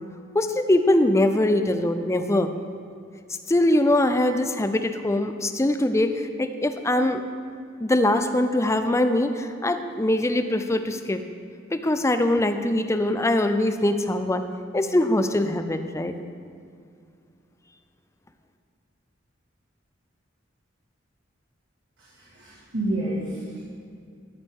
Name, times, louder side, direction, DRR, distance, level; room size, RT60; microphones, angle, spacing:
voice 1, 0.3-2.5 3.5-7.2 7.8-11.2 11.7-14.4 14.7-16.1, left 1 dB, 15° left, 8 dB, 0.5 m, -22 dB
voice 2, 22.0-23.6, right 1 dB, 70° right, -7 dB, 1.9 m, -30 dB
13.5 x 8.3 x 3.7 m, 2.3 s
head